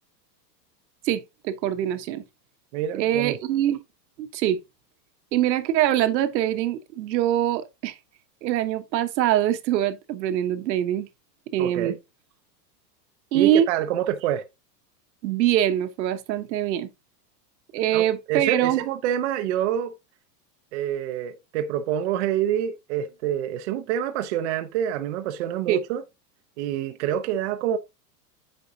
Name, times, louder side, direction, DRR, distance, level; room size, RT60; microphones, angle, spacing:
voice 1, 1.0-2.2 3.0-3.8 4.2-4.6 5.3-8.0 8.4-11.1 11.5-12.0 13.3-13.7 15.2-16.9 17.7-18.8 25.7-25.8, right 11 dB, 85° right, 1.2 m, -23 dB
voice 2, 2.7-3.4 11.6-12.0 13.3-14.4 17.9-19.9 20.7-26.0 26.6-27.8, right 10 dB, 45° right, 0.7 m, -27 dB
8.5 x 5.3 x 2.7 m
supercardioid pair, 175°, 50 cm